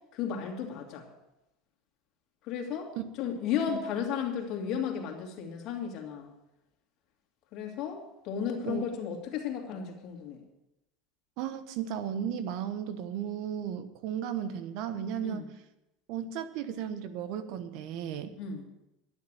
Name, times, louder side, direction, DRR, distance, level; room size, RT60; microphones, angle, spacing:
voice 1, 0.1-1.1 2.4-2.9 3.2-6.3 7.5-10.4 15.2-15.4 18.4-18.6, left 7 dB, 55° left, 1 dB, 2.9 m, -34 dB
voice 2, 11.4-15.4 16.1-18.3, right 9 dB, 65° right, 12 dB, 1.2 m, -35 dB
12.0 x 7.3 x 9.1 m, 0.91 s
supercardioid pair, 125°, 0 cm